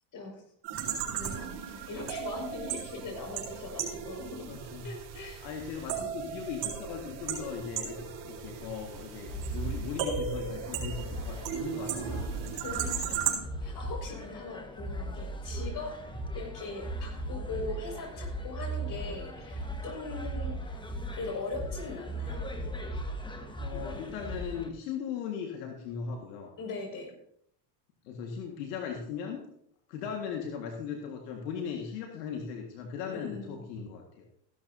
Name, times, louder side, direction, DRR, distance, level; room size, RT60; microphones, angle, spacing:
sound 1, 0.6-13.4, right 8 dB, 60° right, 4.1 m, -36 dB
voice 1, 1.2-4.5 4.8-5.5 5.9-6.1 12.0-12.3 12.5-16.0 16.3-20.8 21.1-22.4 26.6-27.2 33.1-33.6, left 3 dB, 40° left, 1 dB, 5.9 m, -40 dB
voice 2, 4.5-4.9 5.4-12.9 23.5-26.5 28.0-29.4 29.9-34.2, left 6 dB, 80° left, 2 dB, 1.9 m, -38 dB
sound 2, 9.3-24.7, right 1 dB, 10° left, 1.4 m, -38 dB
15.0 x 12.0 x 2.8 m, 0.68 s
supercardioid pair, 100°, 49 cm